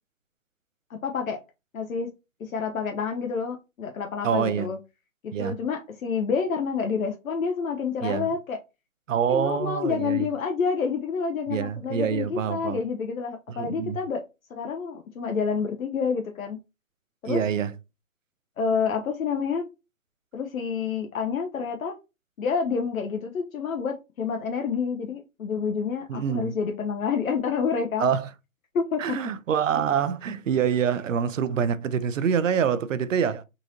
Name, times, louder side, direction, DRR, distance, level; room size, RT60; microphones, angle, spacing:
voice 1, 0.9-1.4 1.7-2.1 2.4-4.8 5.2-8.6 9.3-14.2 14.5-16.6 17.2-17.4 18.6-19.6 20.3-21.9 22.4-28.1 28.7-29.2, left 5 dB, 80° left, 0.7 m, -28 dB
voice 2, 4.2-4.7 5.3-5.6 8.0-8.3 9.1-10.3 11.5-12.8 13.5-14.0 17.3-17.7 26.1-26.5 28.0-28.3 29.0-33.4, right 7 dB, 65° right, 0.5 m, -26 dB
3.8 x 2.5 x 2.9 m
hypercardioid pair, 170°, 41 cm